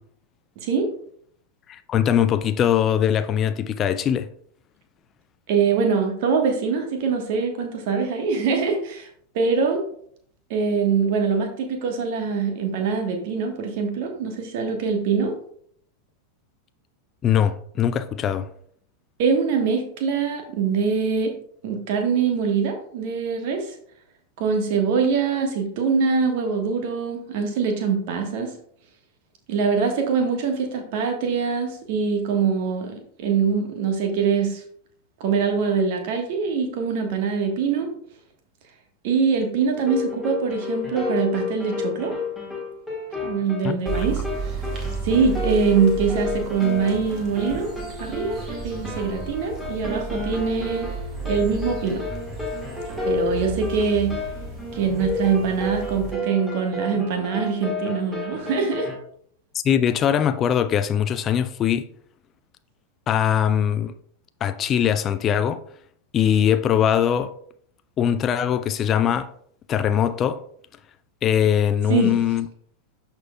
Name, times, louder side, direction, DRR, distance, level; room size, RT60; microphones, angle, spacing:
voice 1, 1.7-4.3 17.2-18.5 43.6-44.1 59.6-61.9 63.1-63.9 64.4-65.6 66.1-67.3 68.0-69.3 69.7-70.4 71.2-72.5, left 9 dB, 30° left, 0.3 m, -21 dB
voice 2, 5.5-9.1 9.3-9.8 10.5-15.4 19.2-21.3 21.6-23.7 24.4-28.5 29.5-34.6 35.2-37.9 39.0-42.1 43.2-44.5 45.0-47.7 48.0-50.9 51.2-52.0 53.0-54.2 54.7-58.9 71.9-72.1, right 5 dB, 50° right, 1.3 m, -23 dB
sound 1, 39.8-59.0, left 3 dB, 5° right, 2.0 m, -31 dB
sound 2, 43.9-56.1, right 5 dB, 30° right, 2.0 m, -33 dB
12.0 x 4.5 x 2.3 m
figure-of-eight pair, 90°, 0 cm